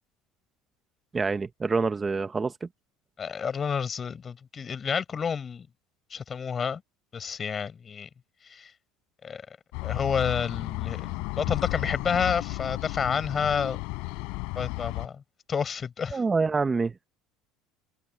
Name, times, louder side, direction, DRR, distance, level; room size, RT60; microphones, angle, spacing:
voice 1, 1.1-2.7 16.1-16.9, right 4 dB, 20° right, 1.1 m, -26 dB
voice 2, 3.2-5.7 6.1-6.8 7.1-8.1 8.5-8.7 9.2-9.4 9.8-13.8 14.6-15.2 15.5-16.2, left 6 dB, 30° left, 7.2 m, -29 dB
sound 1, 9.7-15.1, left 28 dB, 75° left, 7.1 m, -33 dB
open air
supercardioid pair, 95°, 0 cm